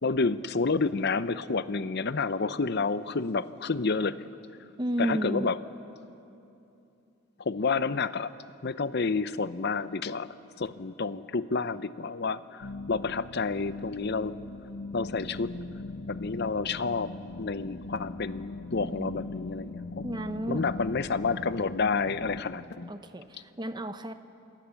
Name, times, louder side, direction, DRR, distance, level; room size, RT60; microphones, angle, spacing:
voice 1, 0.0-4.2 5.0-5.6 7.4-8.3 8.6-14.4 14.9-15.6 16.1-17.1 17.4-20.0 20.5-22.9, left 4 dB, 50° left, 14 dB, 0.7 m, -29 dB
voice 2, 4.8-5.5 18.9-19.2 20.0-20.6 22.9-24.1, equal, 20° right, 9 dB, 0.9 m, -32 dB
sound 1, 12.6-22.4, left 2 dB, 70° left, 1.1 m, -40 dB
28.0 x 25.0 x 7.1 m, 2.8 s
head